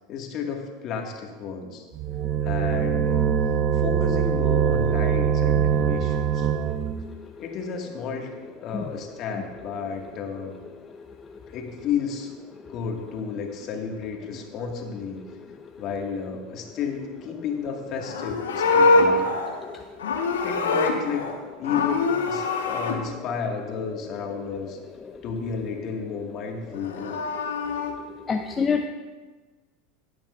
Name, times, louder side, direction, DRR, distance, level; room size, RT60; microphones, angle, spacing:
voice 1, 0.1-1.8 2.4-3.3 3.7-6.5 7.4-8.3 8.6-10.6 11.5-12.3 12.7-15.2 15.8-19.4 20.4-21.3 21.6-24.8 25.2-27.2, left 6 dB, 50° left, 2 dB, 1.9 m, -32 dB
sound 1, 1.9-7.1, right 8 dB, 45° right, 0.5 m, -23 dB
Livestock farm animals working animals, 17.9-21.4 21.6-23.0 26.7-27.9, left 3 dB, 85° left, 1.2 m, -24 dB
voice 2, 28.3-28.9, left 5 dB, 25° left, 4 dB, 0.6 m, -26 dB
16.5 x 8.8 x 2.6 m, 1.3 s
hypercardioid pair, 85°, 0 cm